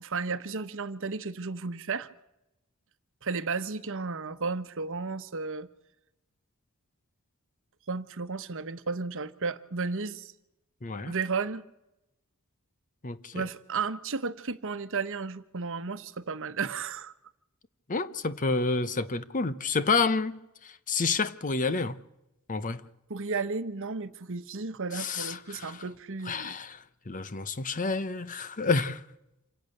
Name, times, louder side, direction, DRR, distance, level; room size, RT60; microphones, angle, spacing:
voice 1, 0.0-2.1 3.2-5.7 7.9-10.3 11.1-11.6 13.3-17.1 23.1-26.6, right 4 dB, 65° right, 1.1 m, -33 dB
voice 2, 10.8-11.1 13.0-13.5 17.9-22.0 22.5-22.8 24.9-25.8 26.3-29.0, left 4 dB, 35° left, 0.9 m, -29 dB
27.0 x 17.0 x 6.7 m
head